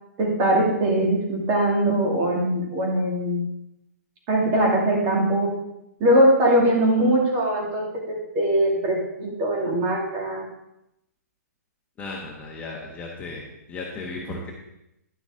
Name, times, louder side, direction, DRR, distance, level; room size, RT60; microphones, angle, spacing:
voice 1, 0.2-3.5 4.3-5.5 6.0-10.4, right 1 dB, 30° right, -1 dB, 2.5 m, -21 dB
voice 2, 12.0-13.4 13.7-14.5, left 3 dB, 15° left, -2 dB, 1.3 m, -35 dB
10.5 x 6.1 x 3.7 m, 0.84 s
hypercardioid pair, 140°, 9 cm